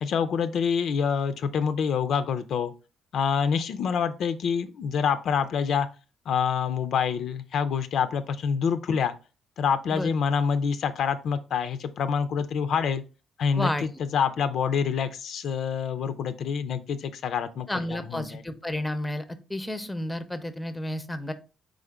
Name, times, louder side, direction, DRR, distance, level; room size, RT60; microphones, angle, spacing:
voice 1, 0.0-2.7 3.1-5.9 6.3-9.1 9.6-13.0 13.4-18.4, left 6 dB, 70° left, 11 dB, 0.4 m, -26 dB
voice 2, 13.5-13.9 17.7-19.2 19.5-21.3, left 1 dB, 10° left, 11 dB, 0.5 m, -31 dB
3.8 x 3.5 x 3.4 m, 0.34 s
cardioid pair, 90°, 0 cm